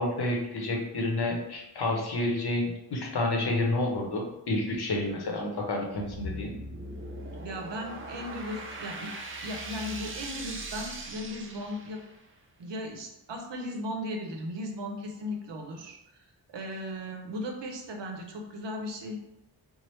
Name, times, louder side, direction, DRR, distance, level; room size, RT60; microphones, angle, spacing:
voice 1, 0.0-6.5, left 2 dB, 60° left, 1 dB, 0.7 m, -29 dB
sound 1, 5.9-12.2, right 1 dB, 30° right, 0.4 m, -40 dB
voice 2, 7.4-9.1 9.4-12.0 12.6-16.0 16.5-19.2, left 1 dB, 70° right, 2 dB, 0.6 m, -37 dB
2.8 x 2.0 x 3.1 m, 0.86 s
wide cardioid pair, 90°, 44 cm